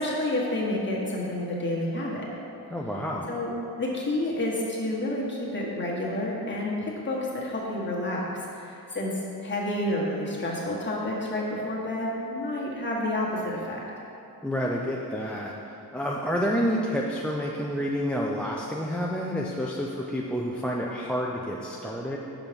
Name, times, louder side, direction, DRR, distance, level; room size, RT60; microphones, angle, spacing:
voice 1, 0.0-2.3 3.3-8.3 8.5-13.8, left 1 dB, 30° left, -4 dB, 1.7 m, -29 dB
voice 2, 2.7-3.3 14.4-15.5 15.9-22.2, equal, 5° left, -3 dB, 0.5 m, -29 dB
6.2 x 5.5 x 5.2 m, 2.8 s
cardioid pair, 80°, 38 cm